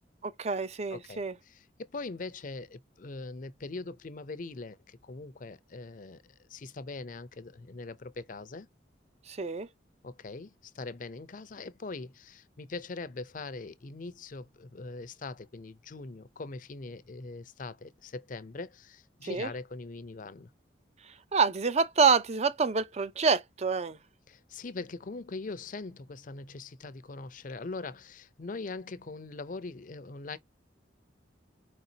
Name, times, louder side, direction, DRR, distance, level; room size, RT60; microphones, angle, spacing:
voice 1, 0.2-1.3 9.3-9.7 19.2-19.5 21.3-24.0, right 5 dB, 35° right, 0.5 m, -27 dB
voice 2, 0.9-8.7 10.0-20.5 24.3-30.4, left 3 dB, 45° left, 0.5 m, -42 dB
4.8 x 4.0 x 2.7 m
head